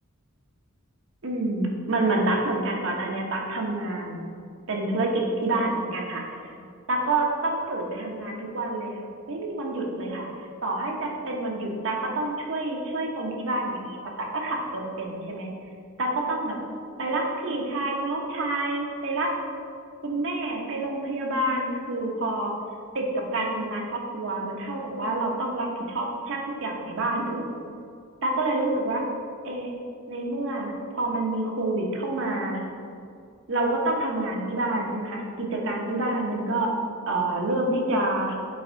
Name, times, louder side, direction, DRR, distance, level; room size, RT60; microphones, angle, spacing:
voice 1, 1.2-4.2 4.7-6.5 6.9-9.0 9.3-10.3 10.6-15.5 16.0-16.6 17.0-19.3 20.0-22.5 22.9-27.5 28.2-29.0 29.4-29.7 30.1-32.6 33.5-36.7 37.1-38.4, right 2 dB, 65° right, 0 dB, 1.0 m, -28 dB
7.5 x 3.6 x 3.9 m, 2.3 s
head